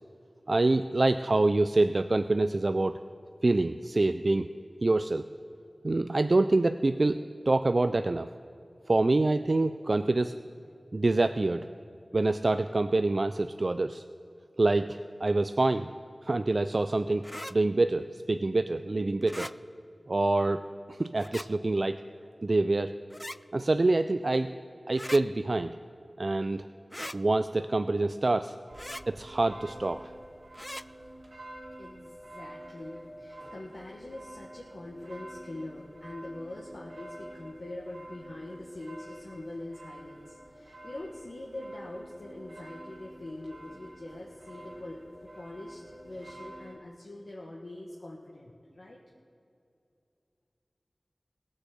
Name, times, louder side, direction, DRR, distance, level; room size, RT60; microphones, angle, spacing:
voice 1, 0.5-2.9 3.4-4.5 4.8-5.3 5.8-8.3 8.9-10.3 10.9-11.7 12.1-14.0 14.6-15.9 16.2-19.5 20.1-20.6 20.9-22.0 22.4-22.9 23.5-24.5 24.9-25.8 26.2-26.7 27.1-28.5 29.1-30.0, right 2 dB, 60° right, 10 dB, 0.3 m, -26 dB
sound 1, 17.2-17.5 19.2-19.5 21.2-21.5 23.1-23.4 24.9-25.2 26.9-27.2 28.7-29.0 30.5-30.8, left 1 dB, 15° left, 0.4 m, -39 dB
sound 2, 28.7-46.7, right 1 dB, 85° right, 2.3 m, -48 dB
voice 2, 31.8-45.0 45.3-49.0, left 1 dB, 75° left, -4 dB, 1.4 m, -43 dB
17.0 x 6.4 x 7.6 m, 2.6 s
wide cardioid pair, 40°, 0 cm